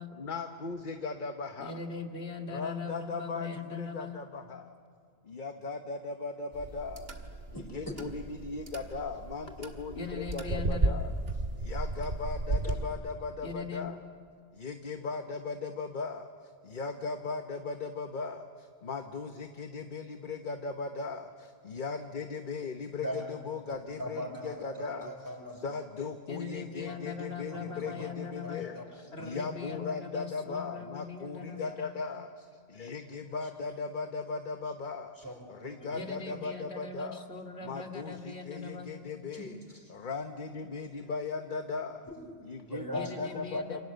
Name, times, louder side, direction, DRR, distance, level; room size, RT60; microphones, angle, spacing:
voice 1, 0.2-1.8 2.5-4.7 5.2-7.1 7.5-11.1 11.6-14.0 14.5-16.3 16.6-25.1 25.5-35.1 35.5-37.3 37.6-39.6 39.9-42.1 42.5-43.8, left 4 dB, 50° left, 6 dB, 1.2 m, -38 dB
voice 2, 1.6-4.2 9.9-11.0 13.4-13.9 26.3-28.6 29.1-31.8 35.9-38.9 42.9-43.8, left 5 dB, 85° left, 3 dB, 2.5 m, -41 dB
sound 1, 6.5-12.9, right 2 dB, 70° right, 2.5 m, -34 dB
voice 3, 7.5-8.0 23.0-23.3 24.0-25.7 26.8-27.0 27.5-28.1 28.4-28.9 29.2-29.5 29.9-30.0 31.5-31.7 33.3-33.4 35.2-36.1 39.3-39.9 42.1-42.4 42.7-43.0 43.5-43.6, equal, 20° left, 1 dB, 5.2 m, -42 dB
29.0 x 26.0 x 8.0 m, 2.2 s
omnidirectional pair, 1.1 m